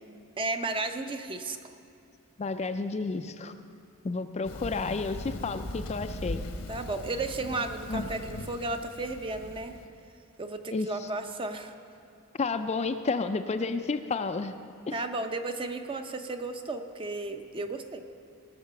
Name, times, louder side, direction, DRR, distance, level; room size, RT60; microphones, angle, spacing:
voice 1, 0.4-1.6 6.7-9.7 10.4-11.7 14.9-18.0, right 2 dB, 25° right, 7 dB, 0.6 m, -34 dB
voice 2, 2.4-3.5 4.0-6.4 7.9-8.1 10.7-11.1 12.4-14.5 14.9-15.0, left 4 dB, 30° left, 8 dB, 0.4 m, -31 dB
Thunder, 4.4-9.8, left 1 dB, 80° left, 1.1 m, -39 dB
18.0 x 6.7 x 6.9 m, 2.5 s
head